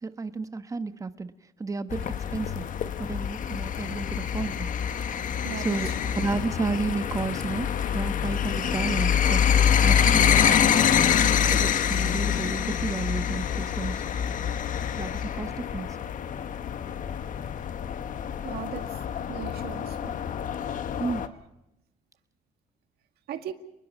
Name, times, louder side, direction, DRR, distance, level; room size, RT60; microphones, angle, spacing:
voice 1, 0.0-1.3 1.6-2.6 3.0-4.7 5.6-5.9 6.1-7.7 7.9-9.4 9.8-10.9 11.2-14.0 14.9-16.0 21.0-21.2, right 3 dB, 20° right, 10 dB, 1.2 m, -32 dB
sound 1, 1.9-21.3, left 8 dB, 50° left, 1.3 m, -26 dB
voice 2, 5.4-5.8 18.4-19.0 19.3-20.2 23.3-23.5, right 10 dB, 70° right, 8 dB, 2.0 m, -37 dB
30.0 x 20.5 x 5.3 m, 0.88 s
cardioid pair, 110°, 17 cm